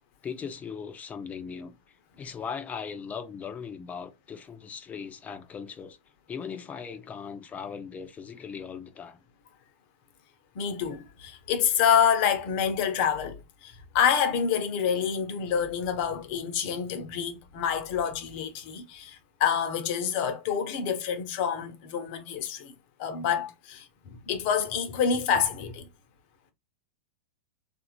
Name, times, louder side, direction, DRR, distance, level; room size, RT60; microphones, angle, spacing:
voice 1, 0.2-1.8 2.2-6.0 6.3-9.2, left 6 dB, 20° left, 0.7 m, -38 dB
voice 2, 10.5-25.9, left 7 dB, 55° left, 0.9 m, -27 dB
3.4 x 2.6 x 3.0 m
hypercardioid pair, 115°, 7 cm